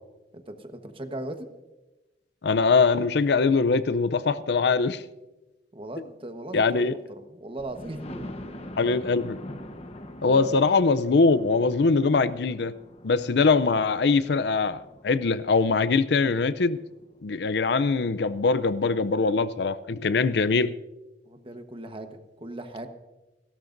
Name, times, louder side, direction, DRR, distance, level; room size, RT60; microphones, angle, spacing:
voice 1, 0.3-1.5 5.7-8.6 8.9-9.0 10.2-10.6 21.2-22.9, right 1 dB, 30° right, 7 dB, 1.2 m, -38 dB
voice 2, 2.4-5.0 6.5-6.9 8.8-9.4 10.2-12.7 13.0-16.8 17.2-20.7, left 4 dB, 70° left, 15 dB, 0.5 m, -22 dB
Thunder, 7.6-17.3 17.9-18.0 18.4-18.5 18.7-18.8, left 1 dB, 35° left, 1.1 m, -44 dB
29.5 x 12.5 x 2.6 m, 1.1 s
head